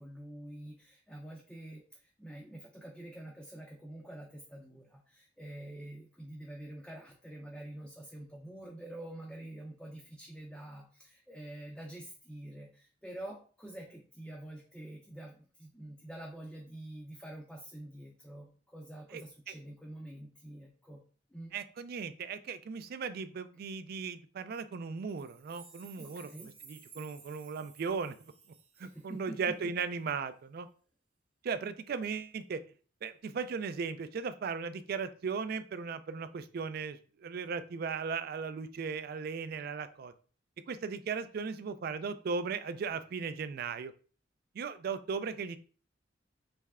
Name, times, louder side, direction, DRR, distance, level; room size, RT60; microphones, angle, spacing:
voice 1, 0.0-21.0 21.3-21.5 26.0-26.5 28.8-29.7, right 1 dB, 5° left, -1 dB, 0.5 m, -47 dB
voice 2, 21.5-28.1 28.8-30.7 31.4-32.6 33.0-40.1 40.7-43.9 44.5-45.6, right 5 dB, 50° right, 13 dB, 0.3 m, -37 dB
sound 1, 25.1-29.5, right 6 dB, 35° right, 0.7 m, -56 dB
3.3 x 3.2 x 3.5 m, 0.40 s
head